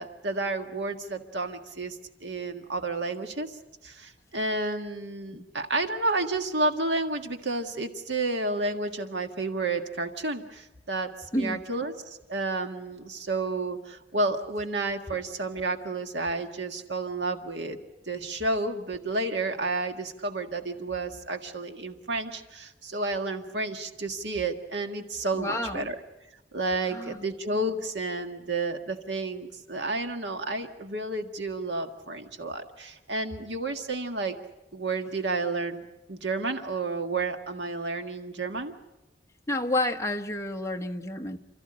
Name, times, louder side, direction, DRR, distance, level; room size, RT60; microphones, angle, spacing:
voice 1, 0.0-3.6 3.8-17.8 18.1-26.0 26.5-34.4 34.7-35.8 36.1-38.7, right 2 dB, 75° right, 1.7 m, -31 dB
voice 2, 25.3-25.9 26.9-27.1 39.5-41.4, left 1 dB, 15° left, 1.1 m, -30 dB
29.0 x 14.0 x 8.8 m
head